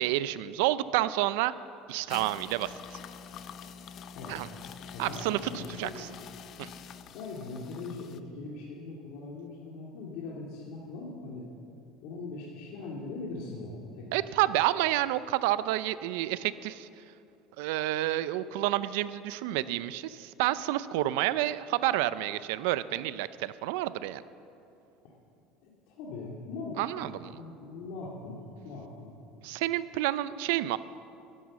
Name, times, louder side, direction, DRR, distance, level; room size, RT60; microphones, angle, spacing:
voice 1, 0.0-1.5 1.9-2.7 4.3-4.5 5.0-6.1 6.6-6.7 14.1-16.9 17.6-24.2 26.8-27.3 29.4-30.8, right 15 dB, 80° right, 15 dB, 0.4 m, -29 dB
sound 1, 1.9-8.2, left 7 dB, 45° left, 0.6 m, -46 dB
voice 2, 4.1-4.4 4.9-6.1 7.1-11.5 12.0-14.1 25.6-28.4 28.6-29.1, left 3 dB, 70° left, -4 dB, 2.1 m, -41 dB
12.5 x 11.0 x 7.3 m, 2.7 s
cardioid pair, 130°, 0 cm